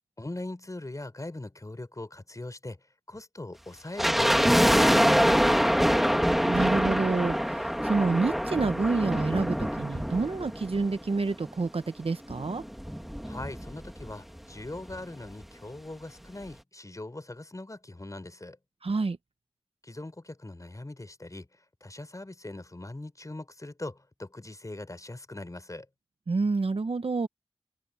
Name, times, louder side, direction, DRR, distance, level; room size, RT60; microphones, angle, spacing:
voice 1, 0.2-2.8 3.1-6.1 13.2-18.6 19.8-21.5 21.8-25.8, left 2 dB, 30° left, 5.1 m, -40 dB
sound 1, 4.0-11.3 11.5-11.6 12.3-14.1 14.4-14.5 14.7-15.0 15.4-15.5, equal, ahead, 2.3 m, -25 dB
voice 2, 6.4-12.6 18.8-19.2 26.3-27.3, right 3 dB, 65° right, 1.3 m, -28 dB
open air
wide cardioid pair, 50°, 11 cm